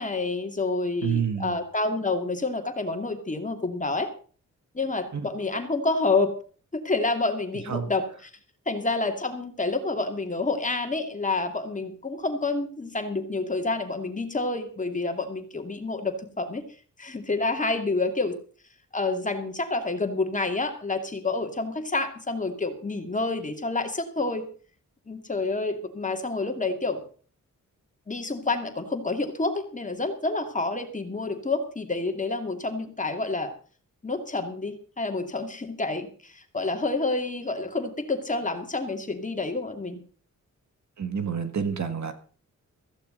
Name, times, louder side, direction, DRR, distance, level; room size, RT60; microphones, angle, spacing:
voice 1, 0.0-4.1 4.7-6.3 6.7-8.3 8.7-16.6 17.0-18.3 18.9-24.5 25.1-27.0 28.1-33.5 34.0-40.0, left 3 dB, 25° left, 2.5 m, -28 dB
voice 2, 1.0-1.6 5.1-5.3 7.7-7.9 41.0-42.1, right 7 dB, 65° right, 2.0 m, -28 dB
15.5 x 14.5 x 4.0 m
wide cardioid pair, 130°, 31 cm